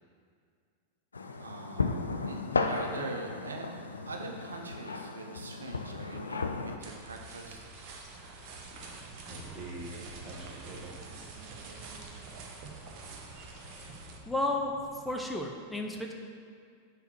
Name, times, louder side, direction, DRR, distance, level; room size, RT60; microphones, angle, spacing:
sound 1, 1.1-6.8, left 3 dB, 75° left, 0.4 m, -34 dB
voice 1, 1.4-3.7 4.1-7.7, right 3 dB, 70° right, 2 dB, 0.7 m, -42 dB
sound 2, 6.8-14.2, right 3 dB, 40° right, 0.9 m, -47 dB
sound 3, 8.8-15.2, right 2 dB, 20° right, 1.5 m, -48 dB
voice 2, 14.3-14.7 15.0-16.1, left 2 dB, 5° left, 1 dB, 0.7 m, -32 dB
5.6 x 4.3 x 6.1 m, 2.2 s
figure-of-eight pair, 90°, 0 cm